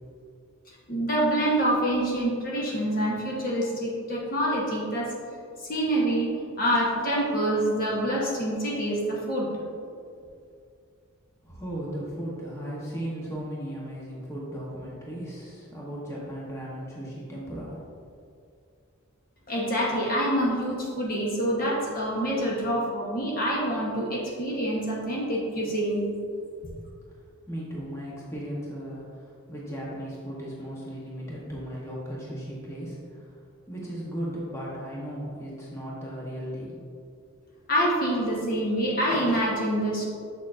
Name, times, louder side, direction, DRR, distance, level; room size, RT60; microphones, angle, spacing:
voice 1, 0.9-5.1 5.6-6.3 6.6-9.5 19.5-26.0 37.7-40.0, right 1 dB, 45° left, -4 dB, 1.1 m, -26 dB
voice 2, 11.4-17.8 27.5-29.0 29.5-33.2 33.7-36.8, equal, 15° left, -5 dB, 1.0 m, -36 dB
7.2 x 6.4 x 2.5 m, 2.3 s
head